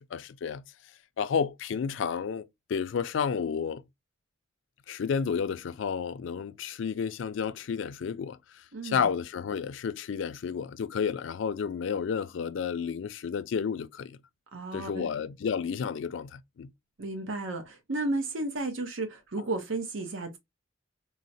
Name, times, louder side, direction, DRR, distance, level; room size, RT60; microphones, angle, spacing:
voice 1, 0.1-0.6 1.2-3.8 4.9-14.2 14.7-16.7, left 6 dB, 70° left, 0.4 m, -31 dB
voice 2, 8.7-9.1 14.5-15.1 17.0-20.4, right 2 dB, 90° right, 0.7 m, -33 dB
3.9 x 2.0 x 2.6 m
head